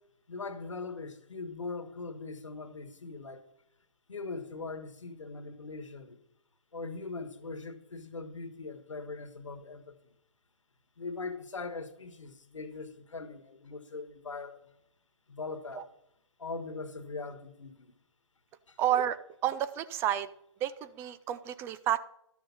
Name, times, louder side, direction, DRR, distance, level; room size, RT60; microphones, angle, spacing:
voice 1, 0.3-3.4 4.1-6.2 6.7-10.0 11.0-14.6 15.3-15.9 16.4-17.9 18.7-18.8, left 3 dB, 85° left, 1.5 m, -41 dB
voice 2, 18.8-20.3 20.6-22.0, right 11 dB, 15° right, 0.4 m, -30 dB
12.5 x 6.5 x 5.6 m
hypercardioid pair, 135°, 16 cm